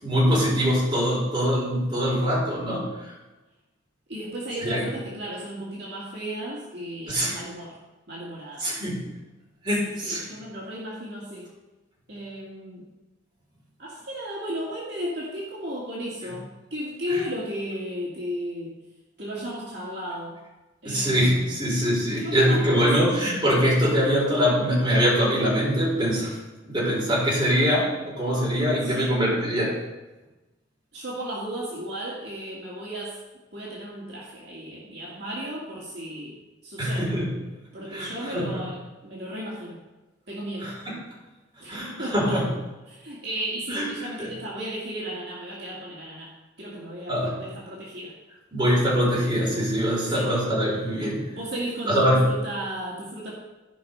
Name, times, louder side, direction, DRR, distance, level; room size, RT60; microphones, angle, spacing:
voice 1, 0.0-2.9 4.6-4.9 7.1-7.4 8.6-9.1 9.6-10.2 17.1-17.2 20.8-26.3 26.6-29.7 36.8-37.3 37.9-38.6 40.6-40.9 41.7-42.5 43.7-43.9 44.2-44.3 47.1-47.4 48.5-51.3 51.9-52.2, equal, 25° right, -6 dB, 4.5 m, -23 dB
voice 2, 4.1-7.8 8.1-8.7 9.8-11.5 12.1-12.9 13.8-18.8 19.2-20.4 20.8-21.5 22.2-23.0 28.8-29.2 30.9-33.2 33.5-36.4 36.6-37.2 37.7-39.8 40.3-40.8 41.6-42.5 42.9-48.1 50.1-50.3 51.3-53.3, equal, 60° right, -5 dB, 2.3 m, -34 dB
15.5 x 5.4 x 5.5 m, 1.1 s
head